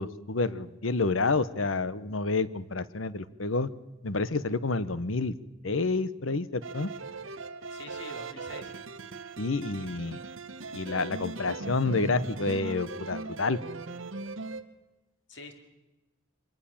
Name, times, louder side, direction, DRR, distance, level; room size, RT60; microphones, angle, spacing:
voice 1, 0.0-3.7 4.0-5.3 5.6-6.9 9.4-10.2 10.7-13.6, left 3 dB, 75° left, 16 dB, 1.0 m, -29 dB
sound 1, 6.6-14.6, right 3 dB, 75° right, 1.2 m, -39 dB
voice 2, 7.7-9.0 9.8-10.2 10.7-10.9 15.3-15.5, left 2 dB, 60° left, 5 dB, 3.1 m, -47 dB
23.5 x 19.0 x 7.2 m, 1.0 s
head